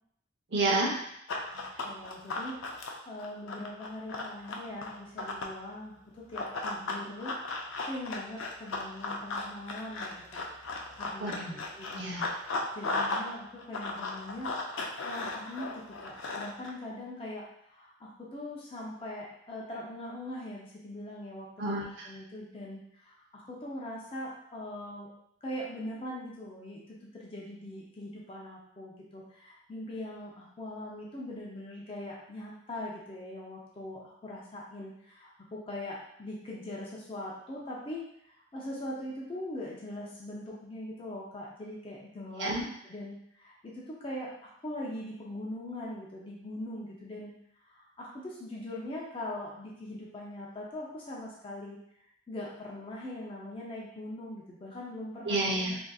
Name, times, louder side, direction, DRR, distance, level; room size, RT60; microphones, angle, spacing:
voice 1, 0.5-1.0 11.2-11.6 12.0-12.3 21.6-22.1 42.4-42.6 55.2-55.8, right 2 dB, 65° right, -2 dB, 0.7 m, -30 dB
Run, 1.3-5.6 6.3-13.3 13.6-16.7, left 3 dB, 85° left, 0.4 m, -36 dB
voice 2, 1.5-7.3 7.8-10.4 10.9-12.4 12.7-21.5 22.0-25.1 25.4-42.5 42.8-47.3 47.6-51.8 52.3-55.4, left 1 dB, 30° left, -4 dB, 0.5 m, -41 dB
3.6 x 2.6 x 2.3 m, 0.73 s
head